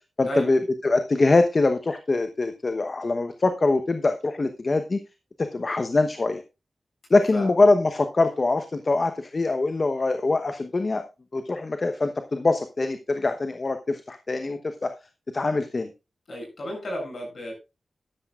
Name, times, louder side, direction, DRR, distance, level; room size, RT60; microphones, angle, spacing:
voice 1, 0.2-5.0 5.4-6.4 7.1-11.0 11.3-14.9 15.3-15.9, left 3 dB, 50° left, 8 dB, 1.0 m, -23 dB
voice 2, 16.3-17.5, equal, 65° left, 0 dB, 7.6 m, -32 dB
12.5 x 12.5 x 2.5 m, 0.27 s
cardioid pair, 45°, 0 cm